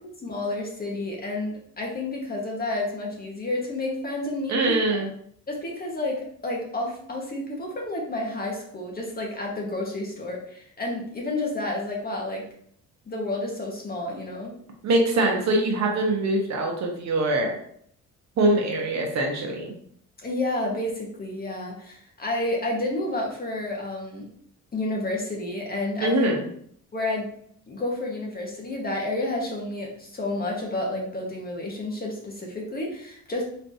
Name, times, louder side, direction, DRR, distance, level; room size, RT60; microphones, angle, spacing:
voice 1, 0.0-5.0 5.5-12.4 13.1-14.5 20.2-24.3 24.7-26.3 26.9-27.3 27.7-33.5, left 2 dB, 30° left, -1 dB, 1.4 m, -30 dB
voice 2, 4.5-5.1 14.8-17.6 18.4-19.7 26.0-26.4, right 2 dB, 60° right, 1 dB, 1.1 m, -23 dB
4.4 x 3.3 x 2.7 m, 0.65 s
cardioid pair, 90°, 30 cm